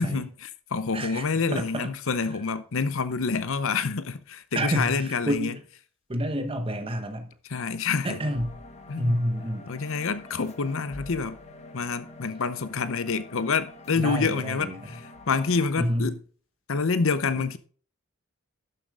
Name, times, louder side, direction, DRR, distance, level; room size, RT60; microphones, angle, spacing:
voice 1, 0.0-5.5 7.5-8.2 8.9-9.2 9.7-11.4 11.7-16.2 16.7-17.6, left 4 dB, 60° left, 0.7 m, -27 dB
voice 2, 0.9-1.3 1.5-1.9 4.5-5.6 6.1-7.3 8.0-8.6 9.0-9.7 13.9-14.8 15.8-16.1, equal, 25° right, 1.2 m, -28 dB
sound 1, 8.0-15.7, left 2 dB, 30° left, 1.2 m, -46 dB
11.5 x 7.2 x 3.7 m
head